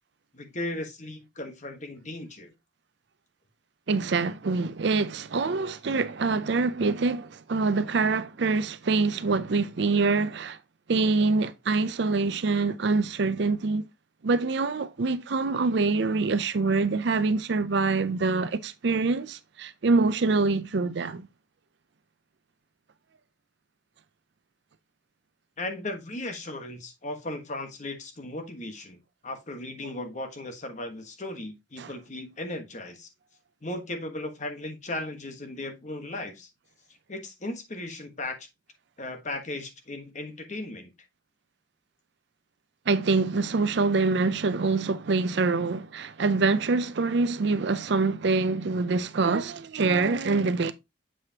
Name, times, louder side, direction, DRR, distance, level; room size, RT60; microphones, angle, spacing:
voice 1, 0.3-2.5 25.6-29.0 29.2-33.1 33.6-36.5 37.1-38.5 39.0-40.9, left 2 dB, 40° left, 1.3 m, -36 dB
voice 2, 3.9-10.6 10.9-13.9 14.2-21.3 31.8-31.9 42.9-50.7, right 3 dB, 60° right, 0.5 m, -25 dB
7.7 x 4.9 x 2.8 m
head